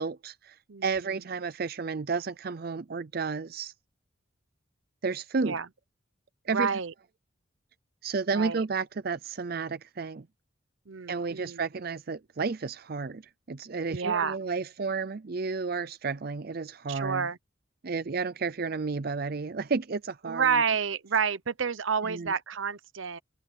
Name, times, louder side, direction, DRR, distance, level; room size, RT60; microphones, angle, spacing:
voice 1, 0.0-3.7 5.0-5.6 6.5-6.7 8.0-10.3 11.1-13.2 13.5-17.3 17.8-20.6 22.0-22.3, right 4 dB, 50° right, 0.5 m, -32 dB
voice 2, 6.5-6.9 8.3-8.6 10.9-11.6 13.9-14.4 16.9-17.4 20.2-23.2, right 6 dB, 75° right, 0.9 m, -29 dB
head